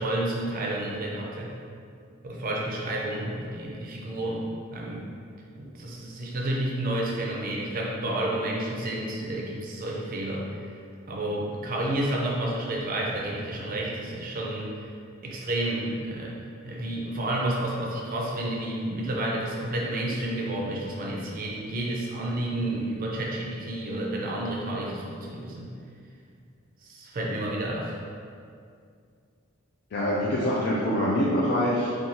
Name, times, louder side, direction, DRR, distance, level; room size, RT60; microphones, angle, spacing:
voice 1, 0.0-1.5 2.2-4.4 4.7-5.0 5.5-10.7 11.1-14.9 15.2-16.4 16.6-25.7 26.8-28.0, right 1 dB, 45° right, -2 dB, 0.4 m, -30 dB
voice 2, 29.9-31.9, equal, 50° left, -6 dB, 0.3 m, -25 dB
2.6 x 2.3 x 2.9 m, 2.3 s
head